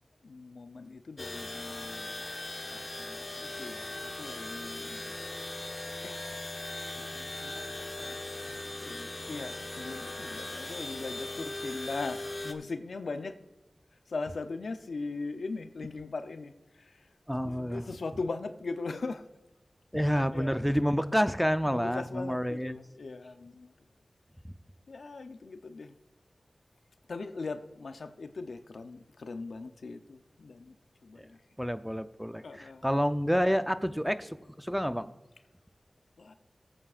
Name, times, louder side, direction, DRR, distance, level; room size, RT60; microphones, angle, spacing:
voice 1, 0.2-2.3 2.7-5.2 6.0-6.2 6.9-13.4 14.1-17.1 17.3-19.2 19.9-20.5 21.6-23.7 24.9-25.9 27.1-30.8 31.0-31.4 32.4-32.8 34.0-34.1 36.2-36.3, left 3 dB, 85° left, 0.7 m, -40 dB
sound 1, 1.2-12.5, left 2 dB, 45° left, 1.1 m, -39 dB
voice 2, 17.3-17.9 19.9-22.8 24.4-24.5 31.2-31.3 31.6-35.1, equal, ahead, 0.6 m, -29 dB
17.5 x 8.6 x 2.5 m
cardioid pair, 45°, 0 cm